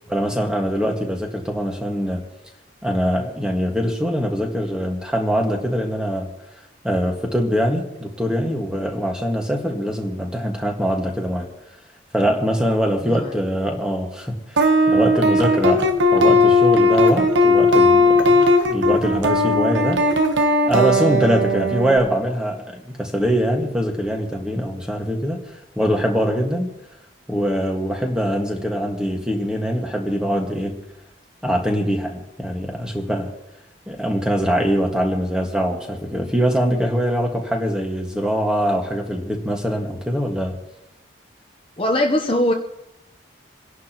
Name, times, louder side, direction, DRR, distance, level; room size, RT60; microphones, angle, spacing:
voice 1, 0.1-2.2 2.8-6.3 6.8-11.5 12.1-20.0 20.7-25.4 25.8-26.7 27.3-30.8 31.4-33.3 33.9-40.6, equal, 5° right, 1 dB, 1.7 m, -23 dB
sound 1, 14.6-22.0, left 1 dB, 65° right, 1.2 m, -17 dB
voice 2, 41.8-42.5, left 1 dB, 25° left, 2 dB, 0.9 m, -20 dB
29.0 x 11.0 x 3.0 m, 0.92 s
head